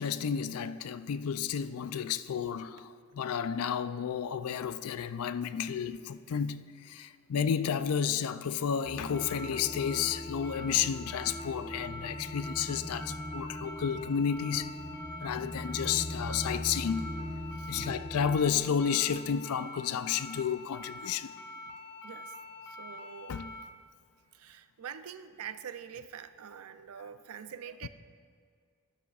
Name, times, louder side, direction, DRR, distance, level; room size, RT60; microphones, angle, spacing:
voice 1, 0.0-2.9 3.2-6.6 6.9-14.7 15.2-17.0 17.7-21.3 23.3-23.5, left 7 dB, 75° left, 0.4 m, -31 dB
sound 1, 8.8-23.6, left 2 dB, 55° left, 0.9 m, -46 dB
sound 2, 8.8-18.4, equal, 10° left, 0.6 m, -40 dB
voice 2, 17.5-18.0 22.0-22.3 22.6-23.4 24.3-27.9, right 8 dB, 70° right, 0.4 m, -45 dB
12.0 x 12.0 x 2.4 m
head